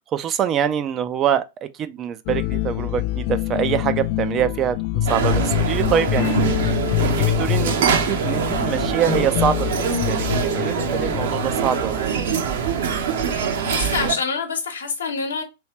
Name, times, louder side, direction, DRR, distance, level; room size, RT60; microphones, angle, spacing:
voice 1, 0.0-6.4 7.0-12.3, right 9 dB, 30° right, 0.4 m, -25 dB
sound 1, 2.3-11.8, left 13 dB, 45° left, 0.4 m, -25 dB
sound 2, 5.1-14.1, right 6 dB, 60° right, 0.8 m, -24 dB
voice 2, 13.2-15.4, left 5 dB, 70° left, 0.9 m, -27 dB
3.1 x 3.1 x 2.9 m
figure-of-eight pair, 95°, 0 cm